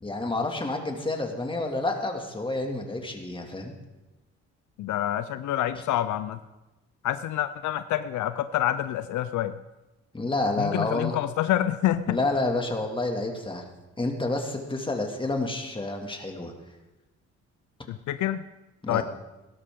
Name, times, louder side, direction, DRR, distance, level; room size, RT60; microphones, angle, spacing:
voice 1, 0.0-3.7 10.1-11.2 12.1-13.6 14.0-16.5 18.8-19.0, left 2 dB, 15° left, 3 dB, 2.2 m, -29 dB
voice 2, 4.8-6.4 7.0-9.6 10.6-12.2 17.9-18.4 18.9-19.0, left 12 dB, 75° left, 12 dB, 0.6 m, -27 dB
17.0 x 12.5 x 3.7 m, 1.1 s
cardioid pair, 90°, 30 cm